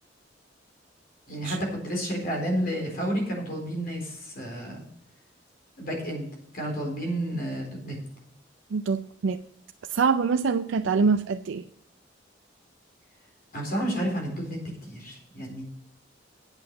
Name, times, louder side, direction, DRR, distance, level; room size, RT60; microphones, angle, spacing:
voice 1, 1.3-4.8 5.8-6.3 6.5-8.0 13.5-15.6, right 1 dB, 55° left, 4.1 m, -31 dB
voice 2, 8.7-9.4 9.9-11.6, right 5 dB, 90° right, 0.4 m, -24 dB
8.9 x 7.8 x 6.5 m
head